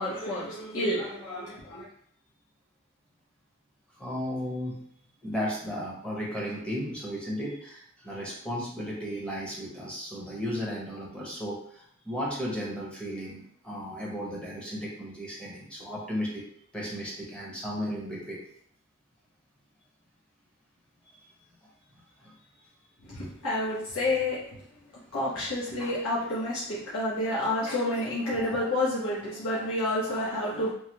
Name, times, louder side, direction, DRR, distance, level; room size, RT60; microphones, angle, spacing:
voice 1, 0.0-1.9 23.0-24.6 25.1-30.7, left 1 dB, 85° left, -9 dB, 0.9 m, -29 dB
voice 2, 4.0-4.8 5.2-16.4 16.7-18.4 21.2-21.3 22.2-22.4, equal, 5° left, -4 dB, 0.7 m, -35 dB
3.2 x 2.2 x 2.9 m, 0.66 s
head